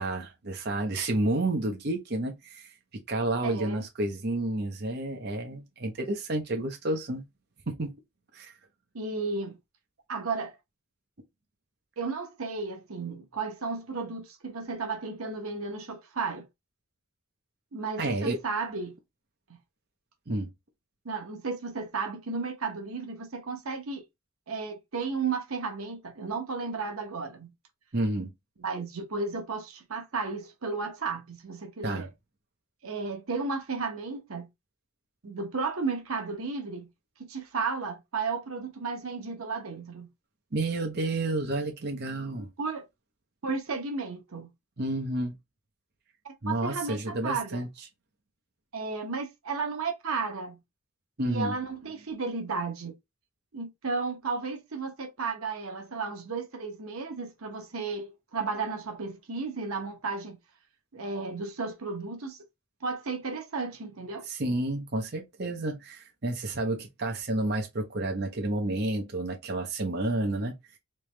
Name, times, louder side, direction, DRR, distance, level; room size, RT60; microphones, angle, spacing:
voice 1, 0.0-2.7 3.1-7.2 7.7-7.9 8.3-8.5 18.0-18.4 20.3-20.5 27.9-28.3 31.8-32.1 40.5-42.5 44.8-45.3 46.4-47.7 51.2-51.5 64.3-70.5, right 2 dB, 50° right, 0.8 m, -30 dB
voice 2, 3.4-3.8 8.9-9.6 10.1-10.6 12.0-16.5 17.7-18.9 21.0-24.0 24.5-27.5 28.6-32.1 32.8-34.5 35.2-36.9 37.3-40.1 42.6-42.8 43.4-44.5 46.2-47.6 48.7-50.6 51.2-52.9 53.5-60.4 60.9-62.4 62.8-64.3, right 4 dB, 85° right, 0.9 m, -33 dB
3.3 x 3.0 x 3.2 m
head